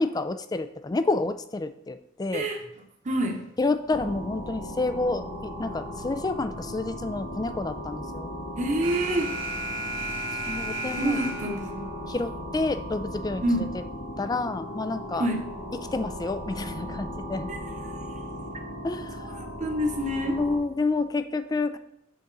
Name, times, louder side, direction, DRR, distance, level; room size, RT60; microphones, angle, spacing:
voice 1, 0.0-2.5 3.6-8.3 10.3-11.2 12.1-13.4 14.2-15.3 15.7-17.5 18.8-19.3 20.4-21.8, left 3 dB, 20° left, 10 dB, 0.4 m, -29 dB
voice 2, 3.0-3.4 8.6-9.3 11.0-11.9 13.4-13.6 15.2-15.4 19.6-20.4, right 1 dB, 40° right, 3 dB, 1.0 m, -26 dB
sound 1, 3.9-20.6, equal, 85° left, 2.2 m, -37 dB
Alarm, 8.8-11.8, right 2 dB, 90° right, 1.3 m, -33 dB
7.7 x 4.1 x 3.9 m, 0.79 s
head